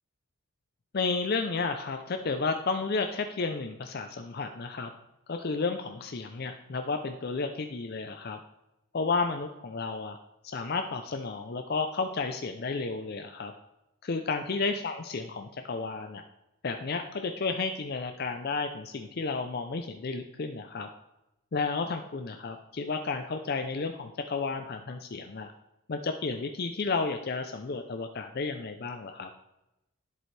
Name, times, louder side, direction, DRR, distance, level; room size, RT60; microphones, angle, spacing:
voice 1, 0.9-4.9 5.3-8.4 8.9-10.2 10.4-13.5 14.0-16.2 16.6-20.9 21.5-25.5 25.9-29.3, left 4 dB, 45° left, 6 dB, 0.5 m, -32 dB
11.0 x 7.6 x 3.2 m, 0.91 s
head